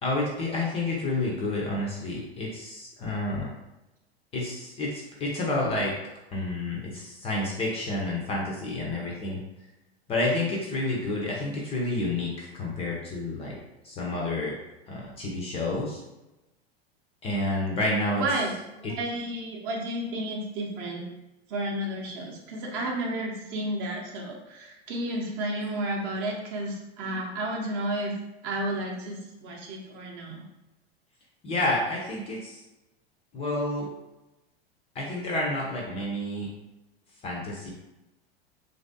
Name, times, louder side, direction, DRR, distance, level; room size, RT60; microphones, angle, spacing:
voice 1, 0.0-3.5 4.3-5.9 6.3-9.4 10.1-13.6 13.8-14.6 14.9-16.0 17.2-18.2 18.8-18.9 31.4-32.6 33.3-33.9 34.9-36.5 37.2-37.7, left 2 dB, 20° left, -2 dB, 0.5 m, -29 dB
voice 2, 18.2-21.1 21.5-28.1 28.4-30.4, right 1 dB, 35° right, 0 dB, 0.7 m, -32 dB
3.1 x 2.6 x 2.6 m, 0.99 s
figure-of-eight pair, 90°, 32 cm